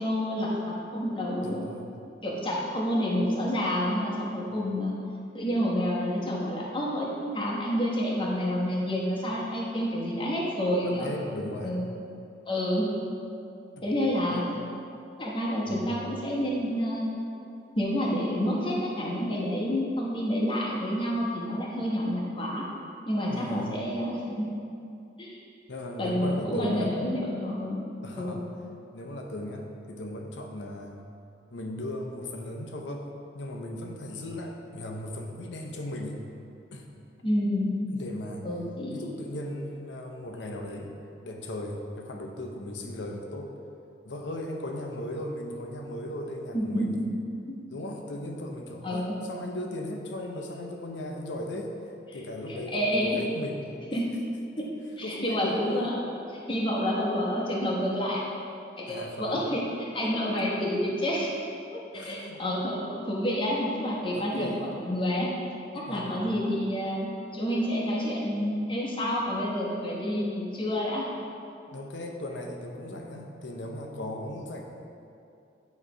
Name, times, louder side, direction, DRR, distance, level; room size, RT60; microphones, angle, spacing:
voice 1, 0.0-1.6 2.2-4.9 5.3-11.1 11.6-11.9 12.5-12.9 13.8-14.4 15.2-17.1 17.8-22.6 23.1-24.5 25.2-25.4 26.0-27.8 28.1-28.4 37.2-37.7 38.4-39.1 46.5-47.1 47.5-47.6 48.8-49.1 52.5-53.2 53.9-54.1 54.6-54.7 55.0-56.0 56.5-58.2 58.8-59.6 59.9-61.3 61.7-65.3 65.7-71.0, equal, 30° left, -4 dB, 1.1 m, -29 dB
voice 2, 1.4-1.9 4.5-4.6 10.7-11.8 13.8-13.9 14.3-14.5 15.7-16.0 23.3-23.7 25.7-26.9 28.0-28.4 28.9-31.0 31.5-33.1 33.3-36.2 36.7-36.9 37.9-38.5 38.9-40.9 41.2-43.5 44.0-47.0 47.7-51.7 52.1-53.6 54.7-55.9 58.9-59.4 60.0-60.4 61.9-62.4 64.1-64.7 65.8-66.2 71.7-74.6, left 1 dB, 85° left, 2 dB, 0.8 m, -37 dB
9.0 x 3.2 x 4.9 m, 2.6 s
head